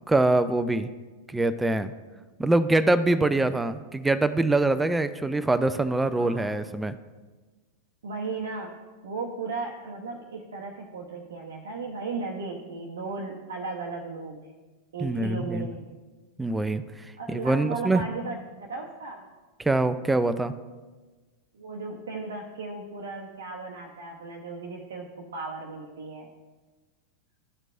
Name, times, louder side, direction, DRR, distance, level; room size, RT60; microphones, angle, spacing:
voice 1, 0.1-0.9 1.3-1.9 2.4-6.9 15.0-15.7 16.4-18.0 19.6-20.6, right 2 dB, 10° right, 12 dB, 0.3 m, -24 dB
voice 2, 6.1-6.6 8.0-8.7 9.0-14.6 14.9-16.0 17.2-19.3 21.5-26.3, right 3 dB, 65° right, 0 dB, 0.7 m, -36 dB
13.0 x 4.5 x 2.5 m, 1.3 s
figure-of-eight pair, 90°, 0 cm